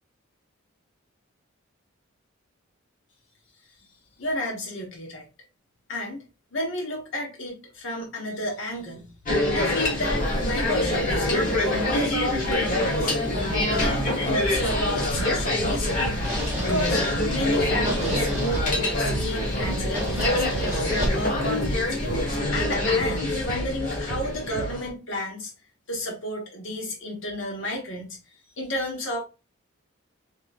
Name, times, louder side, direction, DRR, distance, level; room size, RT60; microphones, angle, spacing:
voice 1, 4.2-5.3 5.9-6.2 6.5-9.1 9.5-13.1 13.6-16.0 16.6-17.0 17.3-20.8 21.1-22.0 22.5-25.5 25.9-28.1 28.6-29.2, left 1 dB, 65° left, 1.2 m, -31 dB
sound 1, 9.3-24.9, left 1 dB, 40° left, 1.2 m, -25 dB
sound 2, 10.2-22.2, equal, 10° right, 0.8 m, -36 dB
sound 3, 15.1-15.3 15.6-15.8 16.1-16.3 16.7-16.9 17.1-17.3 17.6-17.8 18.1-18.3 18.5-18.7 19.1-19.3 19.6-19.8 20.1-20.3 20.5-20.7 21.0-21.2 21.6-21.8 22.1-22.3 22.6-22.8 23.0-23.2 23.5-23.7 24.1-24.3 24.6-24.8, right 4 dB, 50° right, 0.4 m, -34 dB
2.9 x 2.9 x 2.4 m
head